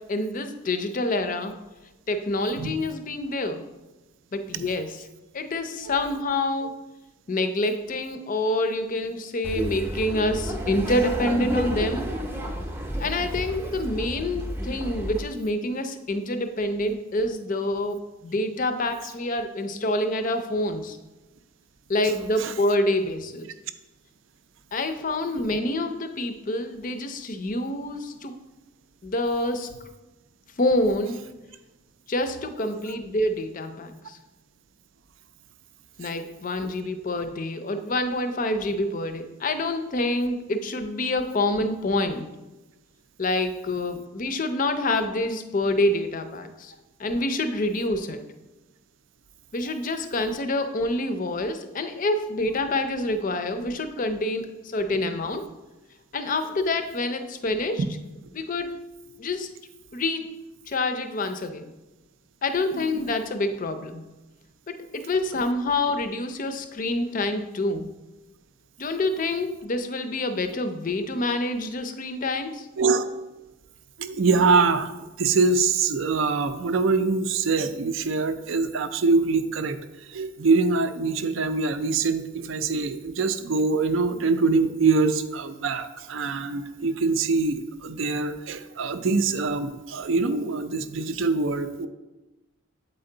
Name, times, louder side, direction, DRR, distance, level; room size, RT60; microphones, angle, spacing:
voice 1, 0.1-1.5 2.1-3.6 4.3-5.1 5.3-6.8 7.3-12.0 13.0-21.0 21.9-23.5 24.7-28.3 29.0-29.7 30.6-31.2 32.1-34.2 36.0-42.3 43.2-46.7 47.0-48.2 49.5-55.5 56.1-57.8 58.3-58.9 59.2-59.5 59.9-60.3 60.7-61.7 62.4-64.0 64.7-67.9 68.8-72.7, left 2 dB, 40° left, 8 dB, 0.5 m, -27 dB
Laughter, 9.4-15.2, right 1 dB, 10° right, 0.6 m, -31 dB
voice 2, 74.0-91.9, right 4 dB, 65° right, 10 dB, 0.5 m, -24 dB
7.9 x 4.4 x 3.8 m, 1.1 s
head